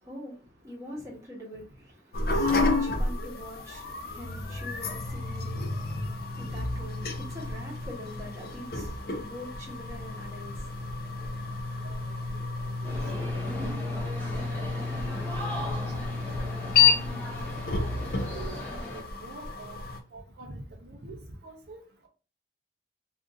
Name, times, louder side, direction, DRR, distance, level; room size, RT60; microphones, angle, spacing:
voice 1, 0.0-11.6, equal, 15° right, 1.0 m, -44 dB
sound 1, 2.1-20.0, left 4 dB, 55° left, 0.4 m, -30 dB
voice 2, 11.8-12.1 12.6-13.0 13.3-13.4 13.9-14.0 14.3-14.4 14.7-14.8 15.9-16.4 16.9-17.5 18.3-19.8 20.1-22.1, right 2 dB, 65° right, 0.6 m, -46 dB
sound 2, 12.8-19.0, left 1 dB, 10° left, 0.9 m, -38 dB
2.5 x 2.5 x 3.7 m
head